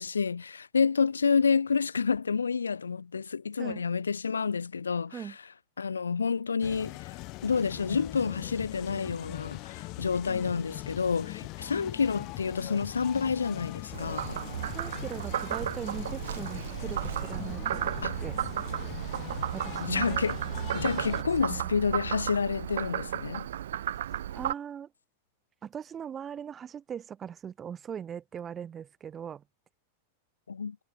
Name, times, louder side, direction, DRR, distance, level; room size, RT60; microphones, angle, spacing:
voice 1, 0.0-5.2 5.8-7.2 7.4-14.4 18.0-18.2 19.8-20.4 20.7-23.5 30.5-30.8, left 5 dB, 75° left, 0.4 m, -29 dB
sound 1, 6.6-21.2, left 24 dB, 40° left, 1.9 m, -41 dB
Frog, 13.9-24.5, right 11 dB, 60° right, 0.7 m, -34 dB
voice 2, 14.7-18.5 19.5-20.3 21.5-21.6 23.9-24.0 24.3-24.9 25.6-29.4, right 8 dB, 25° right, 2.0 m, -40 dB
figure-of-eight pair, 90°, 0 cm